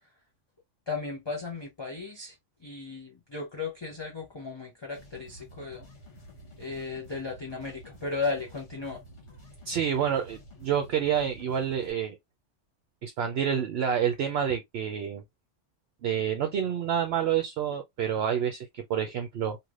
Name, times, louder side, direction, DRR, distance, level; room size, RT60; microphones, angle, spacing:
voice 1, 0.9-2.3 2.6-5.9 6.6-9.0, left 4 dB, 30° left, 0.6 m, -35 dB
sound 1, 4.9-11.9, equal, 65° left, 1.4 m, -50 dB
voice 2, 9.7-12.2 13.0-15.2 16.0-19.6, right 8 dB, 65° right, 0.7 m, -28 dB
3.2 x 2.7 x 2.4 m
omnidirectional pair, 1.3 m